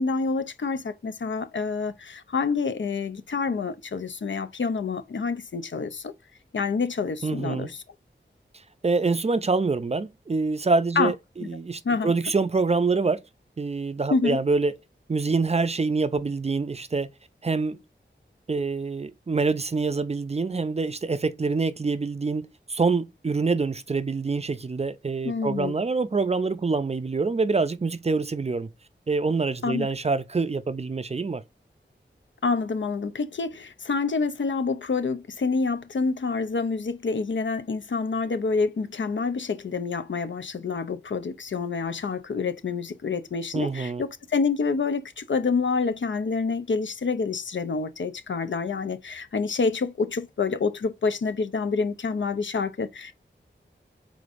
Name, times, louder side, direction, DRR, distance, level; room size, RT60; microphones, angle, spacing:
voice 1, 0.0-6.1 6.5-7.8 11.0-11.1 11.4-11.5 11.8-12.1 14.1-14.4 25.2-25.8 29.6-29.9 32.4-53.1, left 4 dB, 75° left, 0.6 m, -27 dB
voice 2, 7.2-7.7 8.8-13.2 13.6-14.7 15.1-17.1 17.4-17.8 18.5-28.7 29.1-31.4 43.5-44.0, right 4 dB, 35° right, 0.4 m, -26 dB
5.1 x 3.7 x 2.5 m
wide cardioid pair, 60°, 20 cm